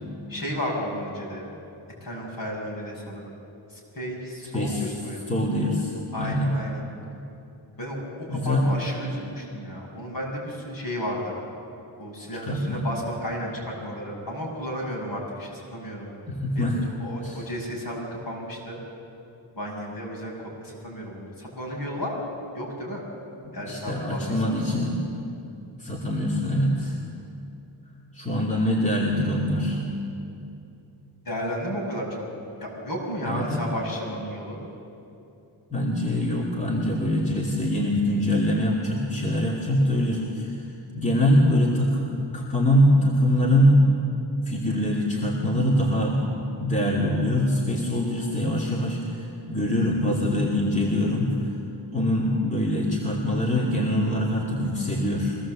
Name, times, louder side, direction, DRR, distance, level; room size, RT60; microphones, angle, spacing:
voice 1, 0.3-1.5 2.0-3.3 3.7-5.3 6.1-6.9 7.8-11.3 12.0-16.1 16.5-18.8 19.6-22.2 22.5-23.0 23.5-24.3 31.2-32.2 32.6-34.6, equal, 50° left, -1 dB, 6.1 m, -33 dB
voice 2, 5.3-6.5 8.3-8.7 12.4-12.8 16.3-16.8 17.2-17.4 23.4-25.0 25.8-27.0 28.1-29.8 33.2-33.6 35.7-40.7 40.9-43.9 44.5-46.2 46.6-51.4 51.9-55.4, left 1 dB, 15° left, -3 dB, 2.7 m, -23 dB
23.5 x 18.0 x 7.6 m, 2.8 s
wide cardioid pair, 110°, 45 cm